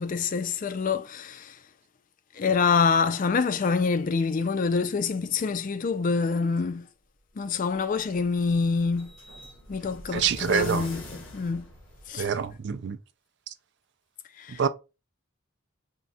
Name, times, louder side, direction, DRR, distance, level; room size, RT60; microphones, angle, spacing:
voice 1, 0.0-1.6 2.3-6.9 7.4-9.1 9.7-11.7 12.1-12.3 14.4-14.6, left 5 dB, 40° left, 0.3 m, -26 dB
sound 1, 7.5-12.6, left 1 dB, 60° left, 1.3 m, -45 dB
voice 2, 10.1-10.9 12.2-13.0 14.6-14.7, right 7 dB, 55° right, 0.4 m, -26 dB
3.5 x 2.3 x 4.1 m
head